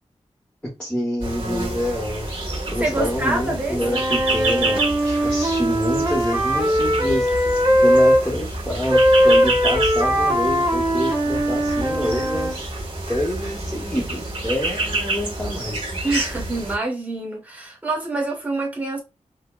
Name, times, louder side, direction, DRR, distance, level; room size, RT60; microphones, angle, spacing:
voice 1, 0.6-2.3 2.7-7.5 7.8-12.7 13.1-15.9, equal, 10° left, 0.9 m, -27 dB
sound 1, 1.2-16.8, right 2 dB, 45° right, 1.7 m, -28 dB
voice 2, 2.8-3.8 16.0-19.0, right 2 dB, 15° right, 1.2 m, -26 dB
Wind instrument woodwind instrument, 3.8-8.2 8.9-12.6, equal, 30° right, 1.7 m, -19 dB
5.7 x 2.1 x 2.3 m
wide cardioid pair, 120°, 12 cm